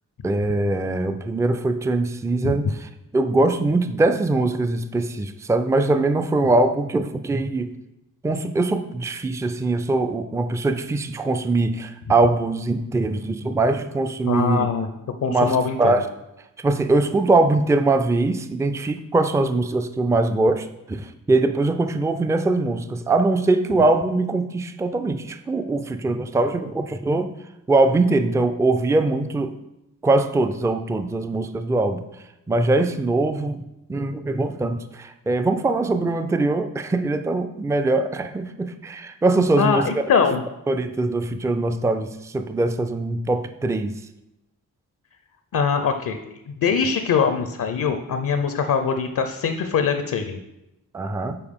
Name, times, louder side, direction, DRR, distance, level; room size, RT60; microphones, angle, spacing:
voice 1, 0.2-7.7 8.2-14.7 15.3-16.1 16.6-27.3 27.7-29.6 30.0-32.1 32.5-33.6 33.9-39.9 40.7-44.0 50.9-51.4, right 2 dB, 10° right, 9 dB, 0.4 m, -22 dB
voice 2, 14.3-14.9 15.2-16.0 39.6-40.4 45.5-46.2 46.5-50.4, left 6 dB, 65° left, 7 dB, 0.6 m, -22 dB
6.8 x 4.4 x 3.6 m, 0.91 s
cardioid pair, 60°, 35 cm